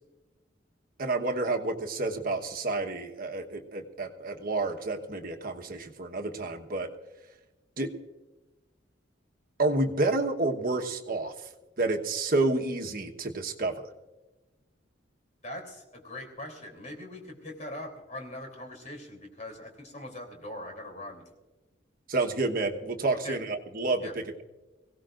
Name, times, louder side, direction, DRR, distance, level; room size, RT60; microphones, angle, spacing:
voice 1, 1.0-6.9 7.8-7.9 9.6-11.3 11.8-13.9 22.1-24.4, right 2 dB, 50° right, 3 dB, 1.2 m, -29 dB
voice 2, 15.4-21.2 23.2-23.4 24.0-24.1, left 1 dB, 40° left, 2 dB, 3.2 m, -41 dB
23.0 x 17.0 x 2.5 m, 1.1 s
head